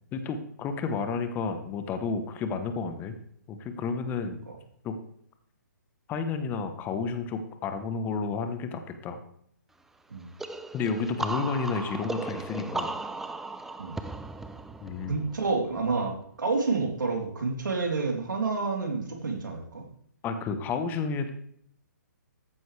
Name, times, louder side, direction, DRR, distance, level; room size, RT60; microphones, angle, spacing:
voice 1, 0.1-3.2 3.5-4.5 4.8-4.9 6.1-9.2 10.7-13.0 14.8-15.2 20.2-21.3, left 5 dB, 20° left, 7 dB, 1.0 m, -31 dB
sound 1, 10.4-16.0, right 3 dB, 5° right, 0.4 m, -36 dB
voice 2, 15.1-19.9, right 4 dB, 80° right, 1 dB, 3.3 m, -29 dB
14.5 x 9.2 x 3.3 m, 0.67 s
hypercardioid pair, 145°, 10 cm